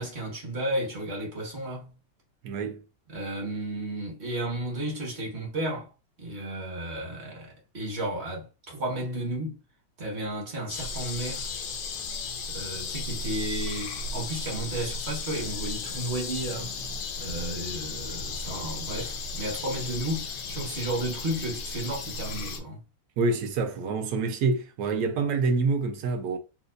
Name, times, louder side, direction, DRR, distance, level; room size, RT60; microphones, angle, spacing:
voice 1, 0.0-2.0 3.1-5.9 6.2-9.6 10.0-11.5 12.5-16.8 17.2-22.8, right 1 dB, 40° right, 1.5 m, -33 dB
voice 2, 2.4-2.8 23.2-26.4, right 4 dB, 70° right, 1.2 m, -27 dB
sound 1, 10.7-22.6, left 4 dB, 85° left, 1.4 m, -35 dB
4.3 x 3.5 x 2.5 m
omnidirectional pair, 1.9 m